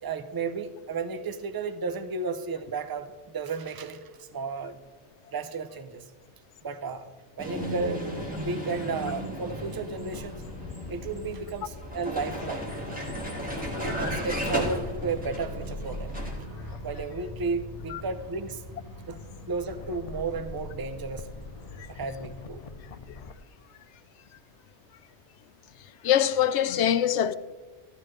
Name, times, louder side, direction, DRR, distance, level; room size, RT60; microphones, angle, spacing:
voice 1, 0.0-4.8 5.3-6.1 6.6-7.1 7.4-8.0 8.4-10.4 10.9-12.7 13.8-16.2 16.8-18.6 19.1-19.2 19.5-21.3 21.9-22.6, right 4 dB, 30° right, 0.5 m, -33 dB
Vehicle, 7.4-16.5, equal, 5° right, 1.9 m, -35 dB
sound 1, 10.1-23.3, left 3 dB, 45° left, 0.5 m, -42 dB
Motorcycle, 12.5-23.2, right 1 dB, 90° right, 2.4 m, -45 dB
voice 2, 26.0-27.3, left 10 dB, 90° left, 0.9 m, -23 dB
13.5 x 12.0 x 3.2 m
omnidirectional pair, 1.1 m